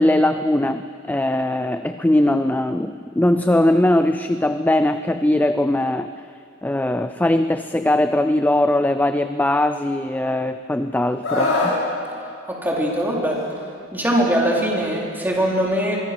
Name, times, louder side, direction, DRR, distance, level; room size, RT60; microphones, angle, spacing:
voice 1, 0.0-6.1 6.6-11.8, left 1 dB, 10° left, 10 dB, 0.4 m, -20 dB
Screaming, 11.2-11.8 13.3-13.5, left 2 dB, 85° left, 5.9 m, -22 dB
voice 2, 12.5-13.4 13.9-16.0, equal, 10° right, -3 dB, 4.0 m, -21 dB
23.5 x 23.5 x 6.1 m, 2.4 s
head